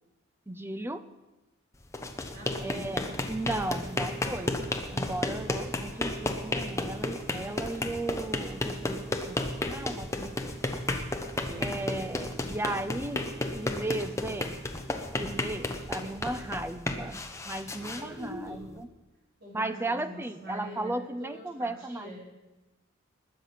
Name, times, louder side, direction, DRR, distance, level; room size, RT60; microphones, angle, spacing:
voice 1, 0.5-1.0 2.6-3.0 3.3-4.6 4.9-10.6 11.6-13.2 13.5-14.6 15.2-18.9 19.5-22.1, right 2 dB, 10° right, 12 dB, 0.5 m, -35 dB
sound 1, 1.8-18.8, left 1 dB, 15° left, 1.0 m, -33 dB
voice 2, 2.3-3.2 11.4-11.8 17.7-18.6 19.4-22.2, right 1 dB, 50° right, -5 dB, 4.9 m, -43 dB
20.5 x 7.3 x 5.9 m, 1.1 s
head